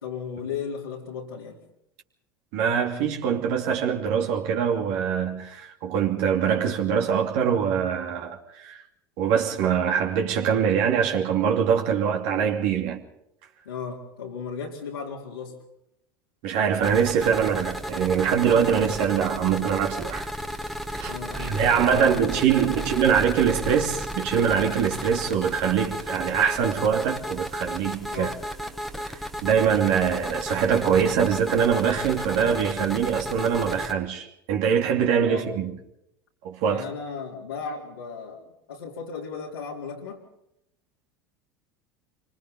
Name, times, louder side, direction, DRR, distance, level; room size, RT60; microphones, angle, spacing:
voice 1, 0.0-1.6 13.6-15.6 21.1-22.3 22.6-23.2 28.1-28.3 35.3-35.5 36.7-40.2, left 6 dB, 85° left, 4.0 m, -36 dB
voice 2, 2.5-8.8 9.2-13.0 16.4-20.3 20.9-28.3 29.0-35.7 36.4-36.8, right 7 dB, 60° right, 2.8 m, -23 dB
sound 1, 16.8-33.9, equal, ahead, 2.0 m, -34 dB
28.0 x 25.0 x 4.1 m
hypercardioid pair, 75°, 12 cm